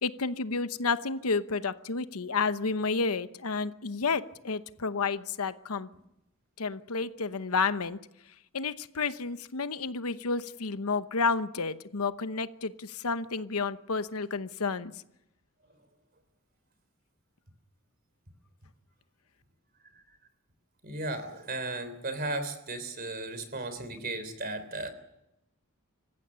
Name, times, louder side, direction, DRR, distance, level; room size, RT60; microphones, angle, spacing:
voice 1, 0.0-5.9 6.6-8.0 8.5-14.9, left 4 dB, 80° left, 12 dB, 0.9 m, -31 dB
voice 2, 20.8-24.9, right 2 dB, 40° right, 11 dB, 3.5 m, -35 dB
26.0 x 15.0 x 9.8 m, 0.88 s
head